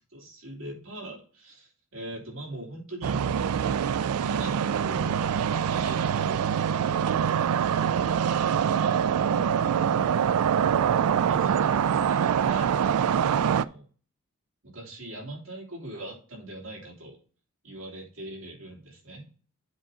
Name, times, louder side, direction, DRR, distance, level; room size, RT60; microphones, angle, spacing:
voice 1, 0.1-3.2 4.1-8.2 11.2-12.7 13.2-13.8 14.7-17.2 17.6-19.3, right 1 dB, 60° right, -2 dB, 2.9 m, -42 dB
sound 1, 3.0-13.6, right 8 dB, 85° right, 0.3 m, -24 dB
7.9 x 3.9 x 5.5 m, 0.40 s
head